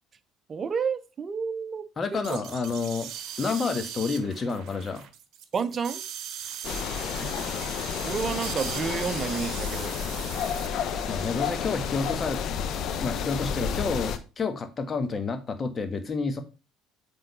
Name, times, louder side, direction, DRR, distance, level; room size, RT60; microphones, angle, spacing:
voice 1, 0.5-1.9 2.1-2.4 5.5-6.0 8.0-9.9, right 6 dB, 40° right, 13 dB, 0.8 m, -30 dB
voice 2, 2.0-3.1 3.4-5.1 7.2-7.3 11.1-12.4 13.0-16.4, left 4 dB, 35° left, 7 dB, 1.6 m, -29 dB
sound 1, 2.2-12.2, right 9 dB, 55° right, 1.1 m, -40 dB
sound 2, 6.6-14.2, left 7 dB, 55° left, 0.9 m, -31 dB
7.7 x 3.9 x 5.5 m, 0.30 s
hypercardioid pair, 60°, 0 cm